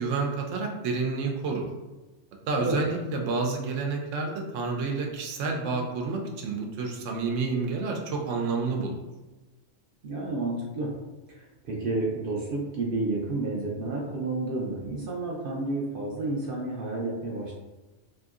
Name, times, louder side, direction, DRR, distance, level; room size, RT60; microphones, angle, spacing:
voice 1, 0.0-1.7 2.5-9.0, right 4 dB, 80° right, 1 dB, 0.9 m, -29 dB
voice 2, 10.0-10.9 11.3-17.5, right 2 dB, 60° right, -3 dB, 0.6 m, -30 dB
2.9 x 2.6 x 2.4 m, 1.1 s
omnidirectional pair, 1.3 m